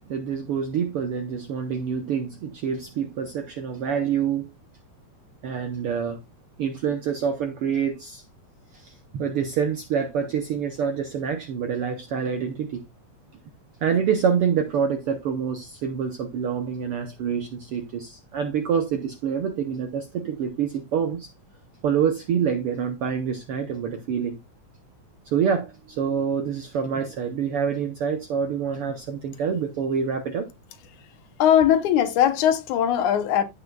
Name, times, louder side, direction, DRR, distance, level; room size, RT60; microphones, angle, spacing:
voice 1, 0.1-4.5 5.4-6.2 6.6-8.2 8.7-12.8 13.8-21.3 21.8-24.4 25.2-30.5, right 7 dB, 75° right, 1.3 m, -26 dB
voice 2, 31.4-33.4, left 10 dB, 75° left, 2.3 m, -20 dB
15.0 x 5.6 x 2.3 m
omnidirectional pair, 3.6 m